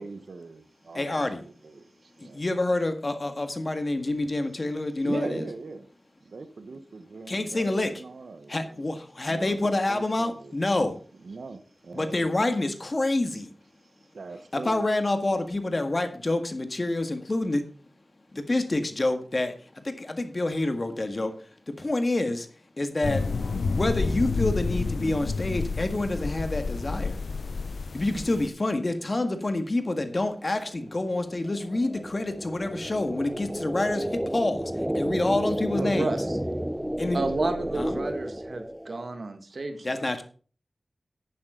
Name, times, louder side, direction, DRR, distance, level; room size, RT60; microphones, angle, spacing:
voice 1, 0.0-2.4 5.0-5.9 6.2-8.8 9.3-10.5 11.2-12.3 14.1-14.8, right 3 dB, 85° right, 9 dB, 1.2 m, -40 dB
voice 2, 0.9-1.4 2.2-5.5 7.3-7.9 8.5-11.0 11.9-13.5 14.5-17.7 18.3-21.3 21.7-22.5 22.8-23.3 23.7-27.2 27.9-36.2 37.0-37.2 37.8-38.0 39.8-40.2, left 2 dB, 45° left, 7 dB, 1.8 m, -27 dB
sound 1, 23.0-28.5, left 4 dB, 80° left, 0.7 m, -29 dB
sound 2, 30.3-39.1, equal, 10° right, 0.5 m, -32 dB
voice 3, 35.8-36.4 37.1-40.1, right 3 dB, 65° right, 7 dB, 1.8 m, -31 dB
11.0 x 9.5 x 3.9 m, 0.40 s
wide cardioid pair, 55°, 0 cm